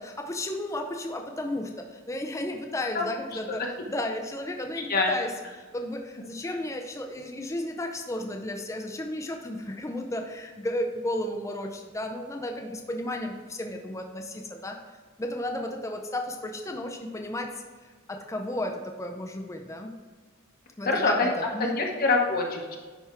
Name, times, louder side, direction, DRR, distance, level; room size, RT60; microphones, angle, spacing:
voice 1, 0.0-3.6 3.9-5.3 5.7-14.8 15.2-17.5 18.1-20.0 20.8-21.8, left 1 dB, 15° left, 3 dB, 0.5 m, -33 dB
voice 2, 20.9-21.3 21.6-22.8, left 3 dB, 45° left, 0 dB, 1.0 m, -25 dB
10.5 x 3.5 x 4.3 m, 1.4 s
head